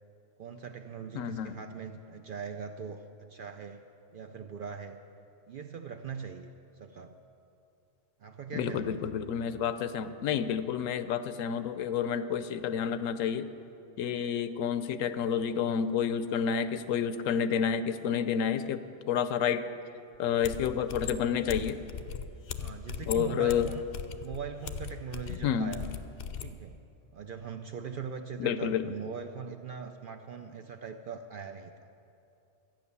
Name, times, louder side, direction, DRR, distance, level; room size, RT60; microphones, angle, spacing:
voice 1, 0.4-3.8 4.1-5.0 5.5-7.1 8.2-9.0 22.5-23.8 24.2-25.9 26.4-26.8 27.1-31.7, right 6 dB, 60° right, 5 dB, 0.6 m, -41 dB
voice 2, 1.1-1.6 8.5-13.5 14.0-19.7 20.2-21.8 23.1-23.7 25.3-25.8 28.4-28.9, left 8 dB, 80° left, 12 dB, 1.0 m, -30 dB
sound 1, 20.1-20.2 20.4-26.5, left 7 dB, 60° left, 0.7 m, -39 dB
13.0 x 9.0 x 6.9 m, 2.7 s
omnidirectional pair, 1.3 m